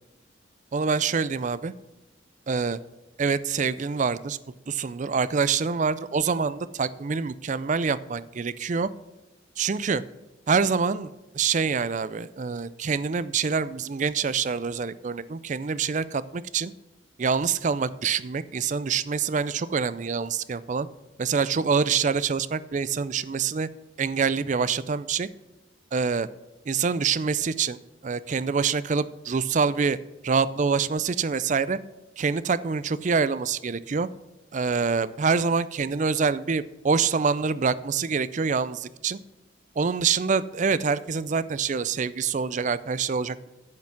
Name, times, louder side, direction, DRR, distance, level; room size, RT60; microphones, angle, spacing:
voice 1, 0.7-1.7 2.5-2.8 3.2-4.4 4.7-8.9 9.6-10.0 10.5-16.7 17.2-20.9 21.2-23.7 24.0-25.3 25.9-26.3 26.7-27.8 28.0-30.0 30.2-31.8 32.2-34.1 34.5-39.2 39.8-43.5, right 5 dB, 40° right, 17 dB, 0.4 m, -26 dB
10.5 x 5.9 x 5.9 m, 1.1 s
head